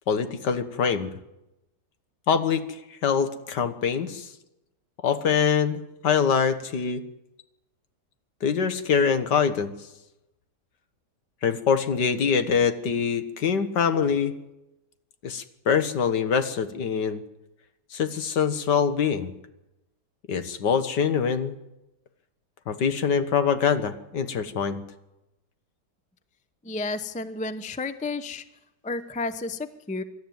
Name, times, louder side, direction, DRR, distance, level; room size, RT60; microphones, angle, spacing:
voice 1, 0.1-1.1 2.3-2.6 3.0-4.3 5.0-7.0 8.4-9.7 11.4-14.3 15.2-17.2 17.9-19.3 20.3-21.6 22.7-24.8, left 6 dB, 80° left, 10 dB, 2.0 m, -24 dB
voice 2, 26.6-28.4 28.8-30.0, left 3 dB, 10° left, 12 dB, 0.4 m, -31 dB
25.0 x 13.0 x 9.4 m, 0.95 s
omnidirectional pair, 1.8 m